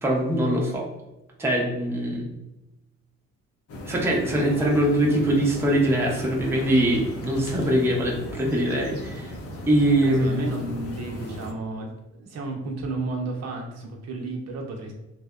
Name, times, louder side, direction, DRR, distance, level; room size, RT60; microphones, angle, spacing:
voice 1, 0.0-0.8 1.4-2.2 3.8-9.3 9.7-10.6, right 1 dB, 10° right, -2 dB, 0.5 m, -23 dB
sound 1, 3.7-11.5, left 1 dB, 50° left, 0.5 m, -37 dB
voice 2, 10.0-11.9 12.2-14.9, right 3 dB, 55° right, 0 dB, 0.6 m, -32 dB
2.6 x 2.0 x 2.3 m, 0.97 s
cardioid pair, 90°, 30 cm